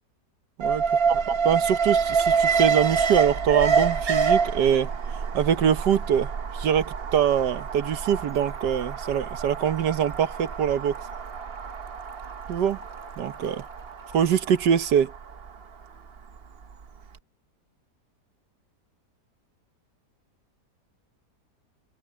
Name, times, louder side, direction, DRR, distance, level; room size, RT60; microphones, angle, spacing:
Alarm, 0.6-16.7 17.0-17.1, right 5 dB, 40° right, 1.0 m, -27 dB
voice 1, 0.6-4.9 5.3-11.0 12.5-12.8 13.2-13.7 14.1-15.1, right 8 dB, 80° right, 1.6 m, -24 dB
Trickle dribble / Fill (with liquid), 7.7-15.0, left 5 dB, 40° left, 6.8 m, -56 dB
omnidirectional pair, 1.8 m